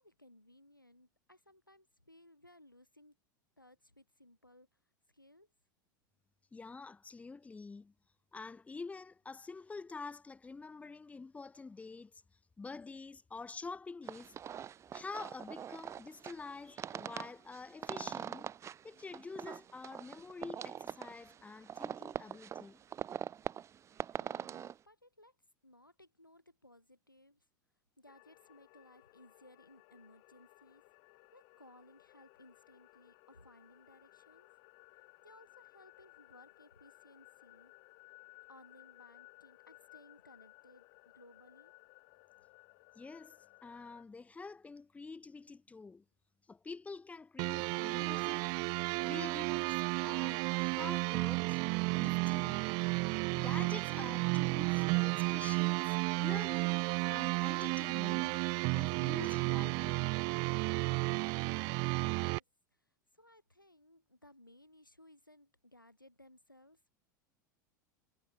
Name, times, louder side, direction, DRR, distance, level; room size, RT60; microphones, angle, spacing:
voice 1, 0.0-3.2 3.6-4.7 5.1-5.5 24.1-25.4 25.6-27.4 28.0-30.8 31.3-34.5 35.2-37.7 38.5-41.7 61.9-62.4 62.7-62.8 63.1-66.9, left 1 dB, 90° left, 2.8 m, -61 dB
voice 2, 6.5-7.9 8.3-12.2 12.6-14.3 14.9-18.5 18.8-22.8 43.0-46.0 46.5-48.5 49.0-51.6 51.9-52.6 53.3-58.3 58.7-60.1, left 4 dB, 15° left, 2.6 m, -47 dB
sound 1, 14.0-24.8, right 9 dB, 25° right, 1.6 m, -43 dB
sound 2, 28.1-44.0, left 38 dB, 50° left, 1.5 m, -61 dB
sound 3, 47.4-62.4, right 31 dB, 45° right, 0.4 m, -33 dB
figure-of-eight pair, 85°, 11 cm